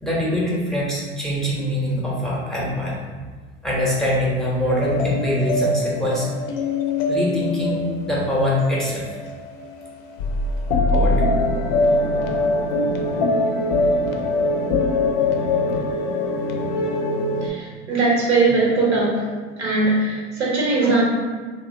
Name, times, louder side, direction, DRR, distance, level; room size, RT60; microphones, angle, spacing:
voice 1, 0.0-3.0 3.6-6.3 7.1-9.1 10.9-11.2, left 1 dB, ahead, -5 dB, 0.6 m, -23 dB
sound 1, 4.8-17.5, left 2 dB, 55° left, 0.4 m, -23 dB
voice 2, 17.4-19.3 19.6-21.1, right 3 dB, 85° right, -5 dB, 0.9 m, -20 dB
2.7 x 2.0 x 2.5 m, 1.4 s
hypercardioid pair, 80°, 33 cm